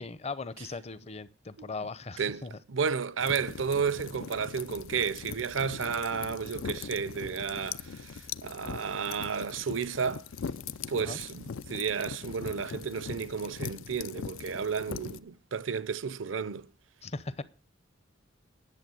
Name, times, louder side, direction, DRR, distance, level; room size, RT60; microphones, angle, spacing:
voice 1, 0.0-2.5 11.0-11.2 17.0-17.4, left 3 dB, 35° left, 0.7 m, -38 dB
voice 2, 2.2-10.2 10.9-16.7, right 6 dB, 80° right, 0.6 m, -32 dB
sound 1, 3.0-9.3, left 1 dB, 65° left, 1.8 m, -58 dB
sound 2, 3.2-15.2, left 6 dB, 90° left, 0.5 m, -41 dB
11.0 x 7.0 x 7.7 m
head